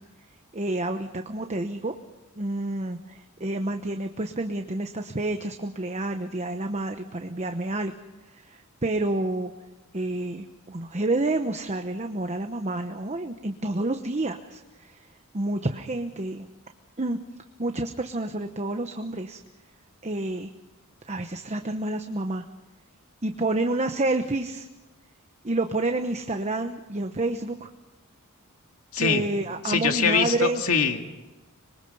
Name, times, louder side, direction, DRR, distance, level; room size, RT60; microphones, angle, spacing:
voice 1, 0.5-1.9 2.4-7.9 8.3-9.5 9.9-15.1 15.3-16.5 17.0-17.2 17.6-19.4 20.0-20.5 21.1-22.4 23.2-24.7 25.4-27.7 29.0-30.6, right 2 dB, 30° right, 6 dB, 1.0 m, -29 dB
voice 2, 29.6-31.1, left 5 dB, 75° left, 5 dB, 2.2 m, -23 dB
26.0 x 22.5 x 5.5 m, 1.1 s
head